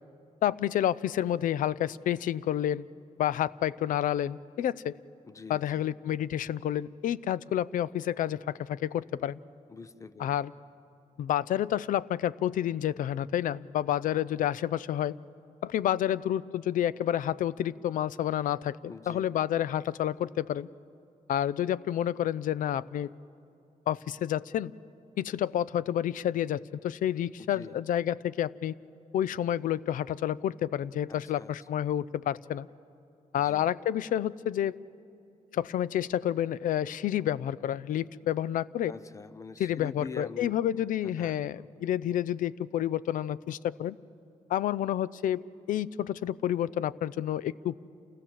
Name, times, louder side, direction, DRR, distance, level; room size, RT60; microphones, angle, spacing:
voice 1, 0.4-2.9 3.2-5.0 5.5-9.4 10.2-10.5 11.2-15.2 15.6-20.7 21.3-23.1 23.9-24.7 25.2-28.7 29.1-32.7 33.3-34.8 35.5-38.9 39.6-44.0 44.5-45.4 45.7-47.8, left 11 dB, 80° left, 19 dB, 0.4 m, -29 dB
voice 2, 5.2-5.9 9.7-10.4 18.9-19.3 27.4-27.8 31.1-31.5 33.4-33.7 38.9-41.7, left 4 dB, 25° left, 15 dB, 0.6 m, -45 dB
28.5 x 16.0 x 7.4 m, 2.7 s
wide cardioid pair, 155°, 14 cm